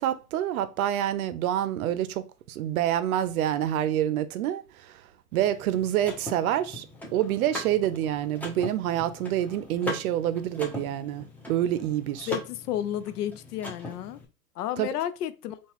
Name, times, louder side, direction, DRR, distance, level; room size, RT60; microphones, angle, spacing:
voice 1, 0.0-4.9 5.3-6.9 7.1-12.3 14.8-14.9, right 11 dB, 65° right, 0.6 m, -27 dB
Car / Mechanisms, 5.3-14.3, left 1 dB, 5° left, 0.7 m, -40 dB
voice 2, 12.3-14.2 14.6-15.6, left 11 dB, 75° left, 0.6 m, -32 dB
3.9 x 2.4 x 2.9 m
hypercardioid pair, 110°, 47 cm